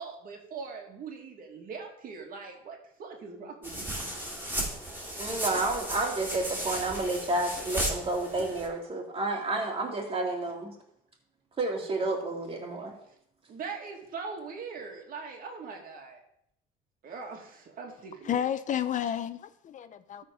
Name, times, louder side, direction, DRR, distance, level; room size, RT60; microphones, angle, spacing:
voice 1, 0.0-4.2 13.5-16.2 17.0-18.4, right 5 dB, 60° right, 2.2 m, -41 dB
sound 1, 3.6-8.7, right 1 dB, 10° right, 3.4 m, -35 dB
voice 2, 5.2-10.7 11.6-13.0, right 2 dB, 35° right, 2.3 m, -30 dB
voice 3, 18.2-20.2, left 9 dB, 50° left, 0.6 m, -31 dB
13.0 x 4.4 x 5.4 m
cardioid pair, 110°, 17 cm